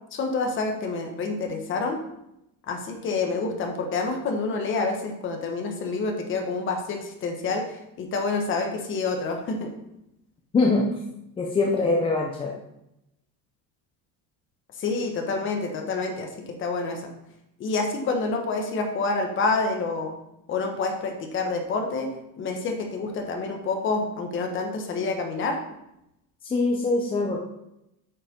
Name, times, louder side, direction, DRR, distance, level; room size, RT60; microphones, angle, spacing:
voice 1, 0.1-2.0 2.7-9.7 14.8-17.0 17.6-20.1 20.5-22.1 22.4-25.6, left 3 dB, 30° left, 3 dB, 1.3 m, -28 dB
voice 2, 10.5-10.9 11.4-12.5 26.4-27.4, left 3 dB, 15° left, -1 dB, 0.6 m, -23 dB
8.7 x 5.6 x 5.2 m, 0.85 s
cardioid pair, 175°, 42 cm